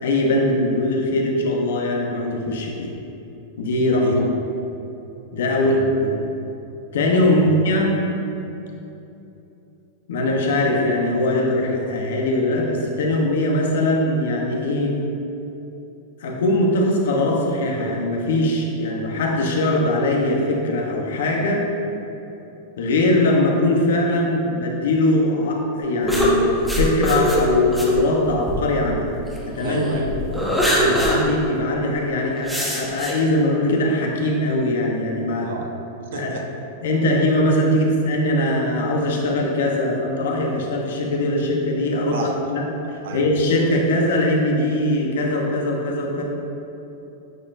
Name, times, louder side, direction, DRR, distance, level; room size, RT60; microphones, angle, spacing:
voice 1, 0.0-2.9 3.6-4.3 5.3-6.2 6.9-8.0 10.1-15.0 16.2-21.7 22.8-29.1 29.4-30.0 30.3-30.4 30.8-35.5 36.1-36.3 36.8-42.2 42.5-42.7 43.1-46.2, left 1 dB, 85° left, 0 dB, 0.9 m, -21 dB
voice 2, 3.9-4.3 5.6-5.8 7.2-7.5 29.6-30.1 30.7-31.0 35.4-35.7 36.1-36.5 42.1-42.4 43.0-43.3, right 3 dB, 75° right, 2 dB, 0.8 m, -31 dB
sound 1, 26.1-29.4 29.9-31.2 31.6-31.7 32.4-33.1, equal, ahead, 0.7 m, -22 dB
9.3 x 4.4 x 2.6 m, 2.9 s
supercardioid pair, 165°, 0 cm